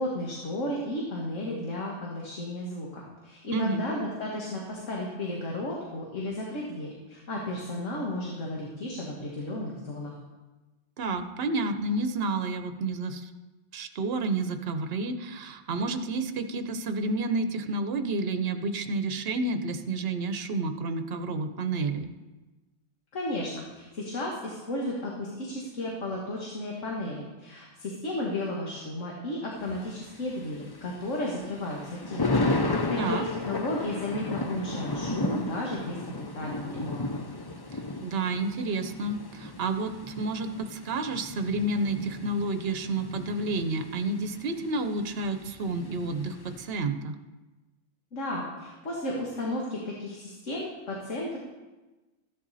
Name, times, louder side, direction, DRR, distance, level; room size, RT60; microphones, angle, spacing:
voice 1, 0.0-10.1 23.1-36.0 36.3-37.2 48.1-51.4, left 1 dB, 75° left, -2 dB, 2.0 m, -33 dB
voice 2, 3.5-3.9 11.0-13.3 13.7-22.1 33.0-33.2 37.7-47.2, right 3 dB, 55° right, 8 dB, 1.0 m, -30 dB
Thunder, 29.6-46.7, left 2 dB, 25° left, 0.5 m, -34 dB
14.0 x 10.5 x 4.1 m, 1.2 s
omnidirectional pair, 1.3 m